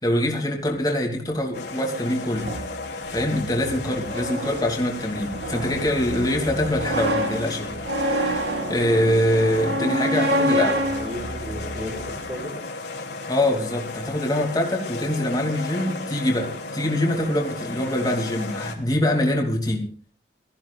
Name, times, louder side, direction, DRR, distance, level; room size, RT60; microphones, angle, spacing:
voice 1, 0.0-2.5 3.1-7.7 8.1-10.8 13.3-19.9, left 1 dB, 20° left, 2.8 m, -24 dB
sound 1, 1.5-18.8, left 3 dB, 85° left, 2.9 m, -35 dB
sound 2, 2.4-12.3, equal, 80° right, 2.6 m, -28 dB
voice 2, 3.6-4.0 8.6-12.6, equal, 35° right, 5.2 m, -37 dB
23.0 x 14.5 x 2.5 m
head